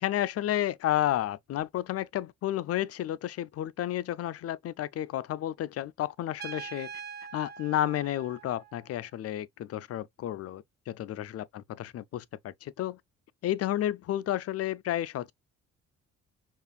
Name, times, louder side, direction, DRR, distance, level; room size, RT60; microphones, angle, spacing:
voice 1, 0.0-6.9 7.3-13.0 13.4-15.3, left 13 dB, 55° left, 0.4 m, -31 dB
Trumpet, 6.4-9.0, right 7 dB, 30° right, 0.9 m, -44 dB
5.4 x 2.5 x 2.3 m
cardioid pair, 90°, 30 cm